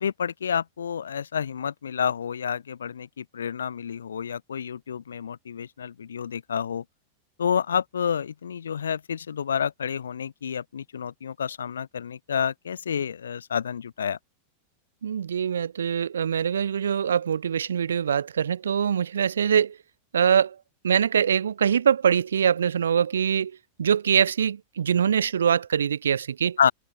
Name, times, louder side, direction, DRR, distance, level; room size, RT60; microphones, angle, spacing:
voice 1, 0.0-6.8 7.4-14.2 26.6-26.7, left 7 dB, 70° left, 1.1 m, -29 dB
voice 2, 15.0-19.8 20.1-20.6 20.8-26.6, right 8 dB, 65° right, 1.8 m, -23 dB
figure-of-eight pair, 90°, 0 cm